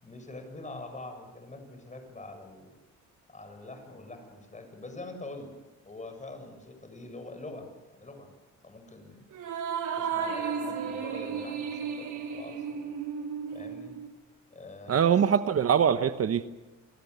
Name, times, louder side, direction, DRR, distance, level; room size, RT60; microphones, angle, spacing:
voice 1, 0.0-2.7 3.3-5.5 5.8-8.3 8.6-9.2 9.9-13.0 13.5-13.9 14.5-15.2, left 2 dB, 25° left, 7.4 m, -44 dB
sound 1, 9.3-14.1, right 6 dB, 80° right, 4.2 m, -34 dB
voice 2, 14.9-16.6, right 8 dB, 50° right, 1.1 m, -23 dB
29.5 x 19.5 x 8.3 m
cardioid pair, 90°, 30 cm